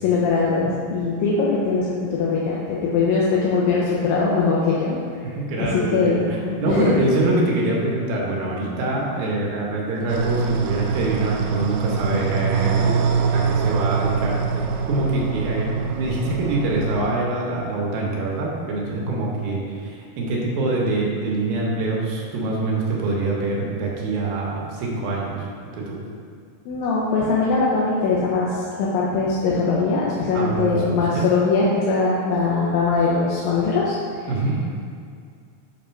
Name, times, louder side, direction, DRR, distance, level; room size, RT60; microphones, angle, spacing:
voice 1, 0.0-5.0 5.6-6.2 6.7-6.9 12.6-13.0 26.7-34.0, left 4 dB, 80° left, -5 dB, 2.2 m, -21 dB
voice 2, 5.4-13.0 13.3-25.5 25.7-26.0 30.3-31.3 34.3-34.6, right 2 dB, 70° right, -3 dB, 2.7 m, -24 dB
sound 1, 10.1-17.0, right 5 dB, 85° right, 2.0 m, -24 dB
7.9 x 3.6 x 5.7 m, 2.2 s
omnidirectional pair, 4.7 m